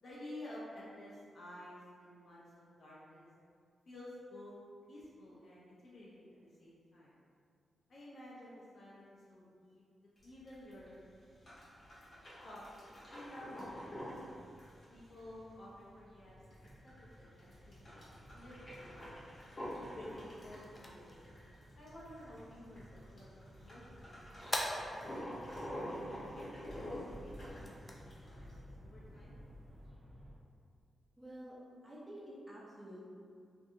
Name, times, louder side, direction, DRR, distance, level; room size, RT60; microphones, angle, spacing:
voice 1, 0.0-3.3 3.9-4.5 4.9-7.2 7.9-10.9 12.4-12.6 13.1-14.0 14.9-16.4 16.8-19.3 19.9-21.2 21.8-24.2 24.5-25.7 26.3-28.5 28.8-29.3, left 1 dB, 60° left, -8 dB, 0.5 m, -53 dB
sound 1, 10.2-28.6, equal, 40° left, 0.9 m, -48 dB
sound 2, 13.5-30.3, equal, 55° right, 0.6 m, -56 dB
sound 3, 20.1-29.9, left 1 dB, 15° left, 0.3 m, -47 dB
voice 2, 31.2-31.6 31.8-33.0, right 1 dB, 10° right, -8 dB, 0.8 m, -49 dB
2.6 x 2.6 x 2.5 m, 2.3 s
wide cardioid pair, 125°, 0 cm